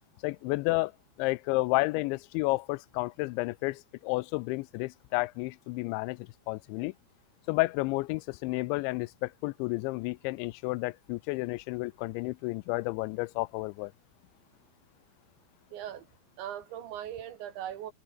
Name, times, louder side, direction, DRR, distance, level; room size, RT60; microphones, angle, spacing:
voice 1, 0.2-0.9 1.2-6.9 7.5-13.9, left 23 dB, 90° left, 2.9 m, -31 dB
voice 2, 15.7-16.1 16.4-17.9, right 11 dB, 80° right, 4.5 m, -39 dB
omnidirectional pair, 5.2 m